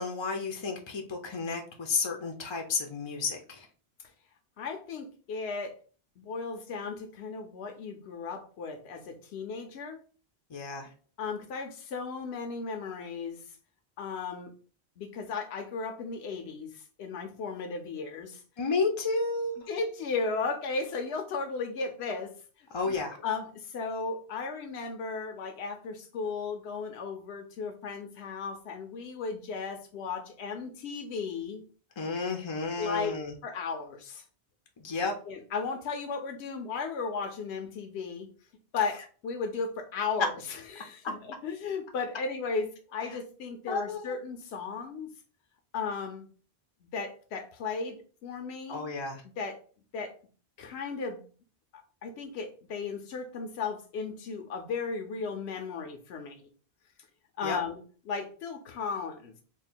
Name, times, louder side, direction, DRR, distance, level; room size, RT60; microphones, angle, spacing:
voice 1, 0.0-3.7 10.5-10.9 18.6-19.7 22.7-23.2 32.0-33.3 34.8-35.1 43.7-44.2 48.7-49.2 57.4-57.6, left 4 dB, 40° left, 3 dB, 0.4 m, -32 dB
voice 2, 4.6-5.8 6.2-10.0 11.2-13.4 14.0-14.5 15.0-18.4 19.7-22.3 22.9-23.0 23.2-31.6 32.8-33.1 33.4-34.2 35.3-38.3 38.7-45.1 45.7-46.3 46.9-48.8 49.4-49.6 49.9-50.1 50.6-51.2 52.0-56.4 57.4-59.4, left 4 dB, 80° left, 4 dB, 0.9 m, -35 dB
3.6 x 2.2 x 4.2 m, 0.40 s
omnidirectional pair, 1.1 m